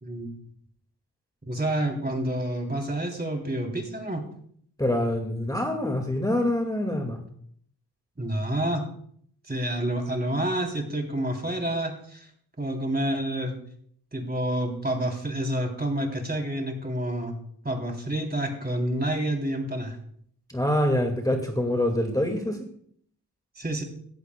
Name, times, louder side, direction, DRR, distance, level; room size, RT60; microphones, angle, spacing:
voice 1, 0.0-0.3 1.5-4.2 8.2-8.8 9.5-12.3 12.6-13.5 14.1-17.3 17.6-20.0 23.5-23.8, right 1 dB, 25° right, 3 dB, 3.2 m, -28 dB
voice 2, 4.8-7.2 20.5-22.6, left 1 dB, 10° left, 3 dB, 1.9 m, -25 dB
16.5 x 14.5 x 2.2 m, 0.63 s
cardioid pair, 55°, 38 cm